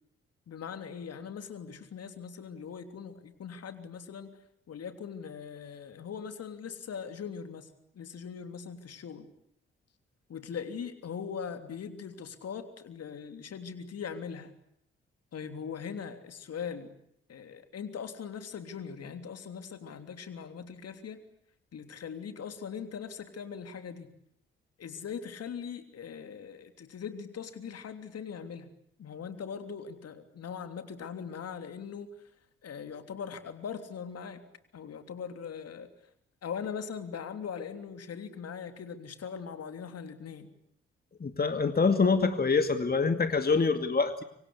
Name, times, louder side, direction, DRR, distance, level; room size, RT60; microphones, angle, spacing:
voice 1, 0.5-4.4 4.7-9.3 10.3-14.5 15.3-16.9 17.3-21.2 21.7-24.1 24.8-28.7 29.0-32.3 32.6-34.4 34.7-35.9 36.4-40.5, left 7 dB, 55° left, 9 dB, 3.2 m, -40 dB
voice 2, 41.2-44.2, left 4 dB, 30° left, 8 dB, 2.4 m, -25 dB
26.5 x 25.0 x 8.4 m, 0.72 s
hypercardioid pair, 40°, 30 cm